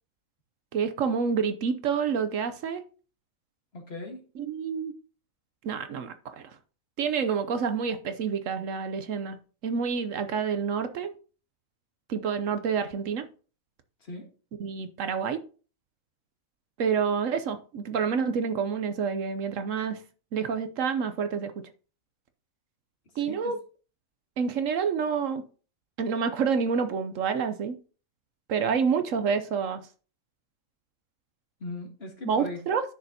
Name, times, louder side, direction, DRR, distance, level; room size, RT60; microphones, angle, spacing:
voice 1, 0.7-2.8 4.4-4.9 5.6-6.4 7.0-9.4 9.6-11.1 12.1-13.3 14.6-15.4 16.8-20.0 20.3-21.6 23.2-23.6 24.4-25.4 26.0-27.7 28.5-29.8 32.3-32.8, right 6 dB, 70° right, 1.1 m, -28 dB
voice 2, 3.7-4.2 14.0-14.3 23.2-23.5 31.6-32.6, left 2 dB, 45° left, 1.9 m, -39 dB
10.0 x 6.6 x 2.7 m
omnidirectional pair, 1.5 m